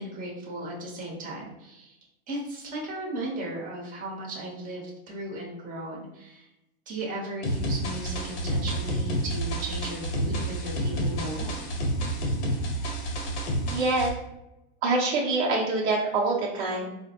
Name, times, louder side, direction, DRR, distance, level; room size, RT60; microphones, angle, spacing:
voice 1, 0.0-2.0 2.3-6.5 6.9-11.5, right 1 dB, 25° right, -4 dB, 1.0 m, -36 dB
sound 1, 7.4-14.1, right 1 dB, 90° left, 1.0 m, -29 dB
voice 2, 13.7-14.1 14.8-16.9, right 3 dB, 60° right, -3 dB, 0.8 m, -25 dB
4.1 x 2.1 x 2.8 m, 0.94 s
supercardioid pair, 140°, 34 cm